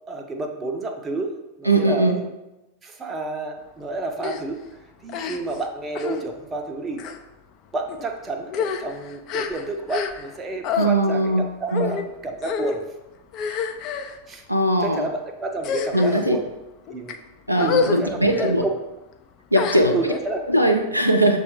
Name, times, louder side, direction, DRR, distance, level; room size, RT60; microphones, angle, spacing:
voice 1, 0.1-1.3 1.6-2.3 2.8-4.6 5.0-7.0 7.7-12.8 14.3-14.4 14.8-16.5 16.9-17.2 17.6-18.7 19.9-20.4, right 2 dB, 20° right, 4 dB, 0.5 m, -30 dB
voice 2, 1.6-2.2 10.8-12.0 14.5-15.1 15.9-16.4 17.5-18.6 19.5-20.1 20.5-21.4, right 1 dB, 90° right, 2 dB, 0.4 m, -20 dB
sound 1, 4.2-4.4 5.1-5.6 5.9-6.2 6.9-7.2 7.9-8.1 8.4-10.4 10.6-10.9 11.7-12.0 12.4-12.8 13.3-14.2 14.8-15.1 15.6-16.3 16.9-17.1 17.6-18.0 18.3-18.5 19.5-20.2, left 6 dB, 35° left, 0.3 m, -28 dB
6.7 x 2.3 x 3.0 m, 1.0 s
figure-of-eight pair, 90°, 0 cm